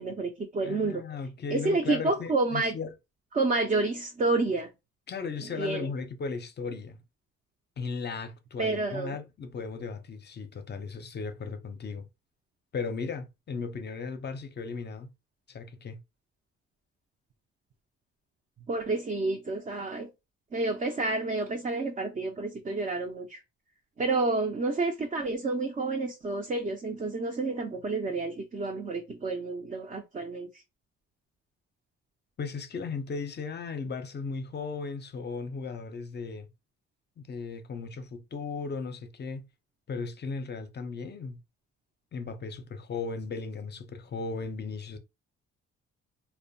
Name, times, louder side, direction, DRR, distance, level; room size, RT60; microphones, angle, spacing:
voice 1, 0.0-1.0 1.5-2.8 3.3-4.7 5.6-5.9 8.6-9.2 18.7-20.1 20.5-23.4 24.0-30.5, right 3 dB, 25° right, 0.5 m, -29 dB
voice 2, 0.6-2.9 5.1-7.0 7.8-12.1 12.7-15.1 15.5-16.0 32.4-36.5 37.2-39.5 39.9-41.4 42.1-45.0, left 4 dB, 35° left, 0.6 m, -36 dB
2.6 x 2.1 x 2.6 m
cardioid pair, 90°, 30 cm